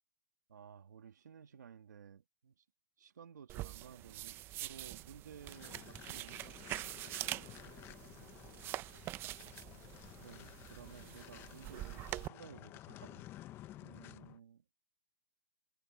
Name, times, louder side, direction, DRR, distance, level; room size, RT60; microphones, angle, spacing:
voice 1, 0.5-2.6 3.0-6.6 10.2-13.3 13.8-14.6, right 7 dB, 85° right, 2.1 m, -55 dB
sound 1, 3.5-12.3, right 15 dB, 25° right, 0.7 m, -45 dB
sound 2, 5.4-14.4, left 15 dB, 25° left, 1.0 m, -54 dB
voice 2, 7.6-9.6, right 12 dB, 65° right, 4.5 m, -69 dB
hypercardioid pair, 145°, 9 cm